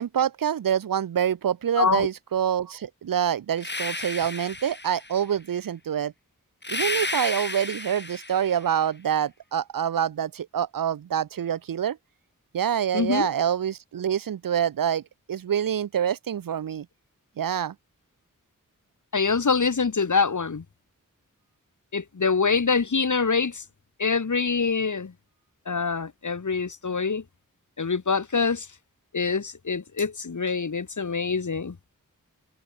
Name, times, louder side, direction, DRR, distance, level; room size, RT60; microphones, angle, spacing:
voice 1, 0.0-6.1 6.7-12.0 12.5-15.0 15.3-16.9 17.4-17.8, right 9 dB, 80° right, 0.6 m, -26 dB
voice 2, 1.8-2.1 12.9-13.3 19.1-20.6 21.9-23.6 24.0-25.1 25.7-27.2 27.8-28.7 29.1-31.8, left 5 dB, 65° left, 2.0 m, -25 dB
sound 1, 3.6-5.2 6.6-8.7, left 2 dB, 30° left, 4.4 m, -32 dB
wide cardioid pair, 60°, 33 cm